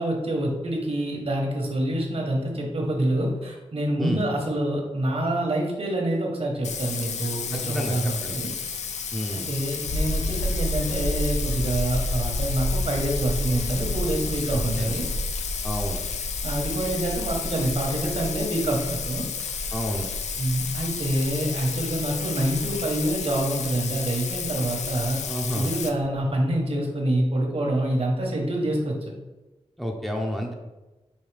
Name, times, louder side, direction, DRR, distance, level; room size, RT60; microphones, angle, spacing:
voice 1, 0.0-8.5 9.3-15.1 16.4-19.2 20.4-25.2 25.6-29.1, right 1 dB, 60° right, 0 dB, 1.0 m, -26 dB
Bathtub (filling or washing), 6.6-25.9, left 6 dB, 85° left, 0.4 m, -32 dB
voice 2, 7.5-8.4 9.1-9.5 14.5-14.9 15.6-16.0 19.7-20.1 25.3-25.7 29.8-30.5, equal, ahead, 1 dB, 0.6 m, -30 dB
sound 1, 9.9-25.9 26.2-26.3, equal, 45° left, 0.7 m, -31 dB
5.4 x 2.7 x 3.3 m, 1.1 s
wide cardioid pair, 70°, 12 cm